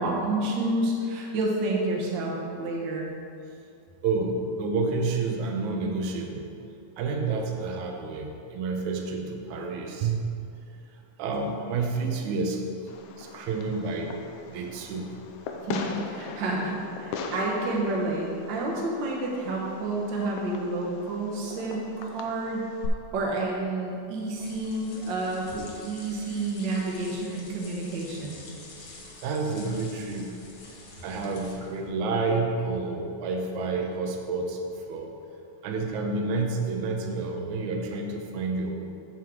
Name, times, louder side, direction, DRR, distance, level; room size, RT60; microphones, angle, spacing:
voice 1, 0.0-3.1 15.6-28.4, right 2 dB, 55° right, -2 dB, 1.4 m, -29 dB
voice 2, 4.0-6.5 7.0-10.2 10.7-12.6 13.2-14.2 14.5-15.1 28.6-28.8 29.2-30.5 31.0-35.1 35.6-38.8, right 3 dB, 80° right, 2 dB, 2.1 m, -29 dB
Fireworks, 12.9-22.9, left 4 dB, 80° left, 2.1 m, -40 dB
sound 1, 24.1-31.9, left 3 dB, 55° left, 1.4 m, -47 dB
13.5 x 4.6 x 3.6 m, 2.6 s
omnidirectional pair, 3.4 m